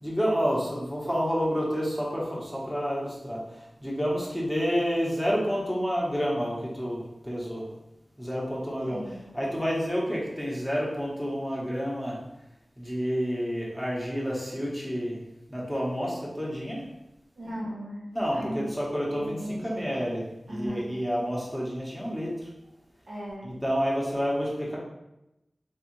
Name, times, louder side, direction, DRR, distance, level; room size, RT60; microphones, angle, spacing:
voice 1, 0.0-3.4 3.8-7.0 7.2-7.6 8.2-9.0 9.3-12.2 12.8-15.1 15.5-16.8 18.1-22.3 23.4-24.8, equal, 5° right, -5 dB, 1.1 m, -29 dB
voice 2, 8.9-9.2 17.4-18.0 18.3-18.7 19.2-19.9 20.5-20.9 23.1-23.5, equal, 90° right, -7 dB, 1.2 m, -36 dB
3.4 x 3.4 x 3.1 m, 0.92 s
wide cardioid pair, 55°, 0 cm